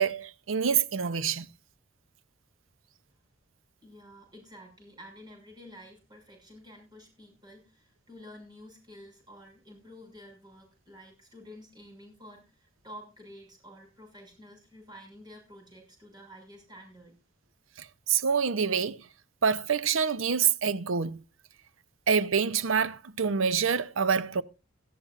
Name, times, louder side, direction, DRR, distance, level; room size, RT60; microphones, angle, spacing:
voice 1, 0.0-1.5 18.1-19.0 19.4-21.2 22.1-24.4, right 6 dB, 75° right, 0.7 m, -26 dB
voice 2, 3.8-17.2, equal, 20° right, 6.2 m, -50 dB
18.0 x 13.5 x 2.5 m
head